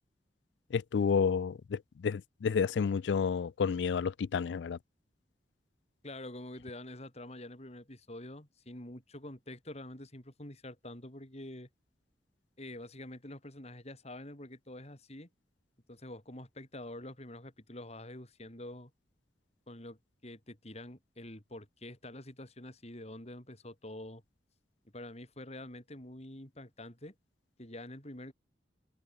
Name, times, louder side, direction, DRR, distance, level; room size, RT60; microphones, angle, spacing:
voice 1, 0.7-4.8, left 6 dB, 90° left, 0.4 m, -30 dB
voice 2, 6.0-11.7 12.6-15.3 15.9-18.9 19.7-24.2 24.9-27.1 27.6-28.3, left 1 dB, 40° left, 5.3 m, -46 dB
head